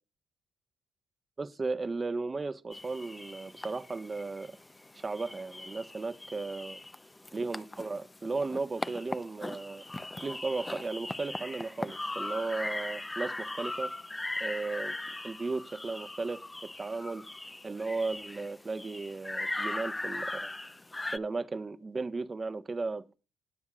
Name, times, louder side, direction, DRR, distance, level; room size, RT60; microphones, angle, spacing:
voice 1, 1.4-4.6 4.9-6.8 7.3-9.8 10.2-13.9 14.4-15.0 15.2-16.4 16.8-17.2 17.6-20.5 21.1-23.0, right 3 dB, 30° right, 1.4 m, -35 dB
sound 1, 2.7-21.2, left 2 dB, 15° left, 0.8 m, -39 dB
20.0 x 7.1 x 2.5 m
hypercardioid pair, 55°, 0 cm